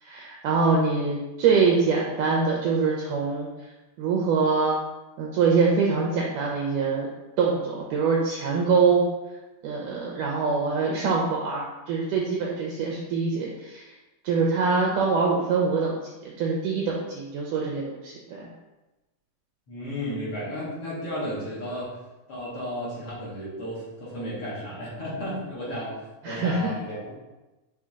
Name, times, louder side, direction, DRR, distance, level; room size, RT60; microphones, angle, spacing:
voice 1, 0.0-3.5 4.0-4.8 5.2-7.1 7.4-9.0 9.6-13.8 14.2-15.9 16.4-18.5 26.2-26.7, right 4 dB, 80° right, -2 dB, 1.8 m, -24 dB
voice 2, 19.7-22.0 22.3-26.0 26.2-27.1, equal, 45° left, -9 dB, 2.4 m, -33 dB
6.8 x 3.8 x 3.7 m, 1.1 s
omnidirectional pair, 4.5 m